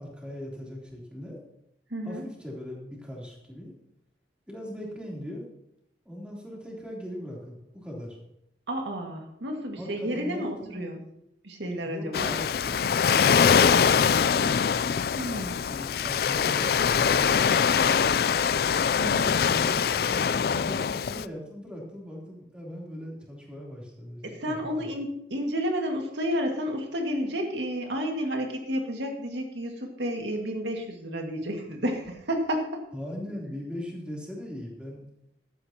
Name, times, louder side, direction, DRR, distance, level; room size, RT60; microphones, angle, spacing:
voice 1, 0.0-1.4 2.0-3.7 4.5-5.5 6.0-8.2 9.8-11.1 11.8-14.6 15.2-18.2 19.0-24.9 32.9-35.0, equal, 5° right, -4 dB, 3.3 m, -40 dB
voice 2, 1.9-2.2 8.7-11.0 11.4-12.3 15.1-15.5 19.0-19.3 24.2-32.8, equal, 80° right, 2 dB, 2.0 m, -31 dB
Waves surf, 12.1-21.2, left 7 dB, 55° left, 0.3 m, -23 dB
15.0 x 12.5 x 2.9 m, 0.77 s
head